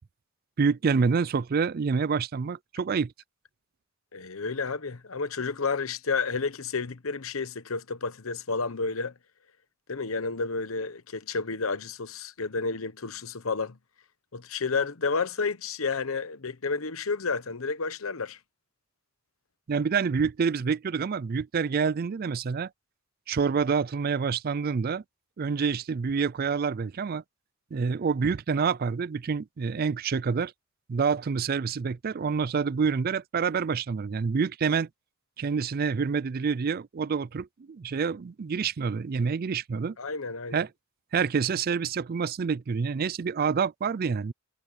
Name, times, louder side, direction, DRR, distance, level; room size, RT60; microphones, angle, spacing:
voice 1, 0.6-3.1 19.7-22.7 23.3-25.0 25.4-27.2 27.7-30.5 30.9-34.9 35.4-40.0 40.5-40.7 41.1-44.3, right 5 dB, 45° right, 0.4 m, -27 dB
voice 2, 4.1-9.1 9.9-13.8 14.3-18.4 40.0-40.6, left 4 dB, 80° left, 1.0 m, -31 dB
head